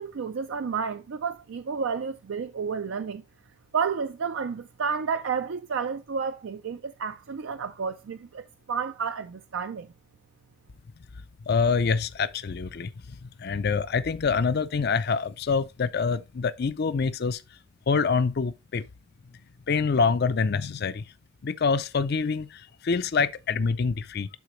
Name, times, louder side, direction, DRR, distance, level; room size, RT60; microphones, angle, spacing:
voice 1, 0.0-3.2 3.7-9.9, right 6 dB, 60° right, 0.4 m, -31 dB
voice 2, 11.5-12.9 13.2-17.4 17.9-18.8 19.7-21.0 21.4-24.3, left 5 dB, 50° left, 0.5 m, -26 dB
11.5 x 4.0 x 3.1 m
head